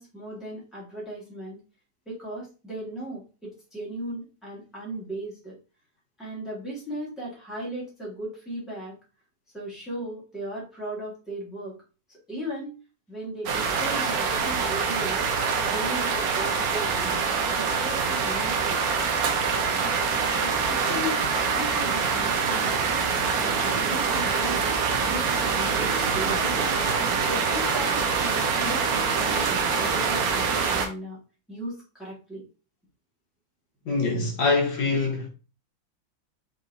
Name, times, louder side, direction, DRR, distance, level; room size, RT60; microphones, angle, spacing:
voice 1, 0.0-1.6 2.0-5.6 6.2-8.9 9.5-11.7 12.1-12.8 13.1-15.3 15.6-17.2 17.5-18.8 20.4-22.9 23.4-24.7 25.0-25.3 25.5-26.7 27.2-31.2 31.5-32.4, right 1 dB, ahead, 1.5 m, -36 dB
sound 1, 13.5-30.9, right 5 dB, 65° right, 1.0 m, -25 dB
voice 2, 33.9-35.3, left 3 dB, 75° left, 2.0 m, -24 dB
4.4 x 3.7 x 2.6 m
omnidirectional pair, 2.1 m